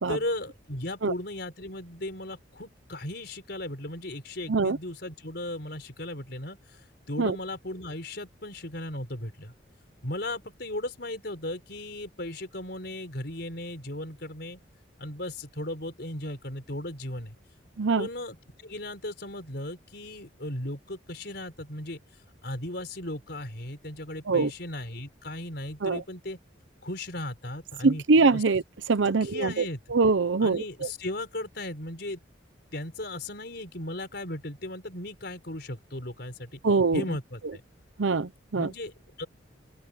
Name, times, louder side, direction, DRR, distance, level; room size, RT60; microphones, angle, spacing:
voice 1, 0.1-9.5 10.0-14.6 15.0-17.3 18.0-18.4 18.6-22.0 22.4-26.4 26.8-28.0 28.3-28.4 29.1-29.8 30.4-32.2 32.7-36.6 36.9-37.6 38.5-38.9 39.2-39.3, left 1 dB, 60° left, 5.1 m, -36 dB
voice 2, 17.8-18.1 24.3-24.5 25.8-26.0 27.8-28.6 28.9-29.6 29.9-30.9 36.6-37.0 38.0-38.7, right 4 dB, 80° right, 0.7 m, -23 dB
open air
head